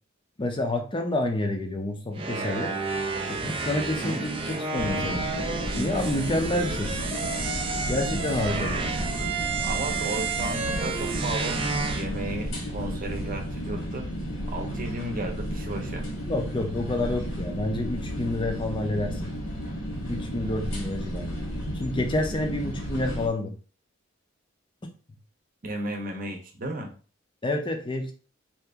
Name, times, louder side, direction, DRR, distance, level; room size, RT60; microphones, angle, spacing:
voice 1, 0.4-2.7 3.3-5.2 5.8-7.0 7.9-8.8 9.0-9.3 16.3-19.2 20.1-21.3 21.7-23.5 27.4-28.1, left 1 dB, 25° left, 4 dB, 0.5 m, -28 dB
sound 1, 2.1-12.0, right 4 dB, 25° right, 0.4 m, -30 dB
sound 2, 4.7-23.3, equal, 80° left, 1.4 m, -33 dB
voice 2, 9.6-14.1 14.5-16.1 25.6-26.9, right 1 dB, 45° right, 3 dB, 0.7 m, -34 dB
2.8 x 2.5 x 3.4 m, 0.37 s
head